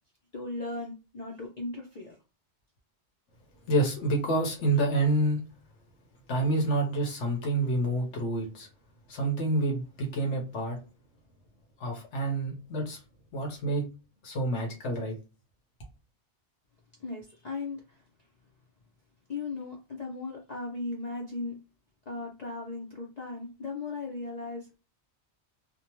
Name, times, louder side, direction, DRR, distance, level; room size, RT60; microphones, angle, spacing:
voice 1, 0.3-2.2 17.0-18.0 19.3-21.6 22.1-24.7, left 3 dB, 50° left, -1 dB, 0.5 m, -37 dB
voice 2, 3.7-5.4 6.3-8.7 9.1-10.8 11.8-13.0 13.3-13.8 14.2-15.1, right 2 dB, 90° left, 1 dB, 1.1 m, -28 dB
2.7 x 2.0 x 2.9 m, 0.31 s
omnidirectional pair, 1.2 m